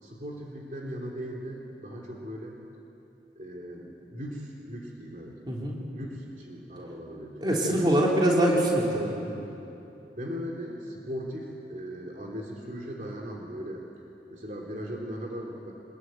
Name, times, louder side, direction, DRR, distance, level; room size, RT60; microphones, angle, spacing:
voice 1, 0.0-2.6 3.3-5.4 5.9-8.2 9.1-9.5 10.1-13.8 14.3-15.7, equal, 45° right, -1 dB, 3.2 m, -38 dB
voice 2, 7.4-9.1, right 1 dB, 25° right, -3 dB, 3.6 m, -23 dB
25.5 x 21.5 x 9.4 m, 2.9 s
head